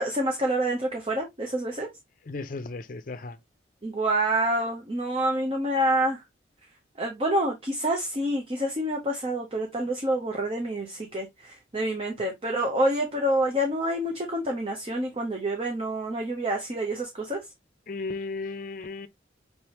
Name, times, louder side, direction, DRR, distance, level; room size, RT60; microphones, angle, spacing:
voice 1, 0.0-1.9 3.8-6.2 7.0-17.4, right 1 dB, 30° right, 0.7 m, -27 dB
voice 2, 2.3-3.4 17.9-19.1, left 3 dB, 45° left, 0.5 m, -35 dB
5.4 x 3.3 x 2.9 m
head